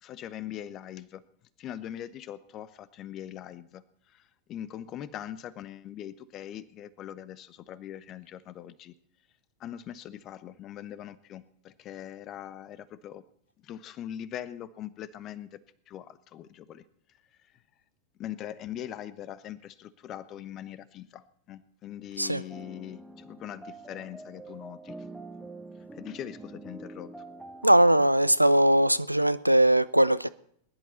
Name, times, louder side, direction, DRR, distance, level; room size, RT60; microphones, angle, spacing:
voice 1, 0.0-1.2 1.6-8.9 9.6-13.2 13.6-16.8 18.2-25.0 25.9-27.1, left 11 dB, 35° left, 0.9 m, -41 dB
sound 1, 22.5-28.1, right 2 dB, 5° right, 1.3 m, -45 dB
voice 2, 27.6-30.3, right 1 dB, 90° right, 0.5 m, -20 dB
20.5 x 11.0 x 4.1 m
figure-of-eight pair, 90°, 0 cm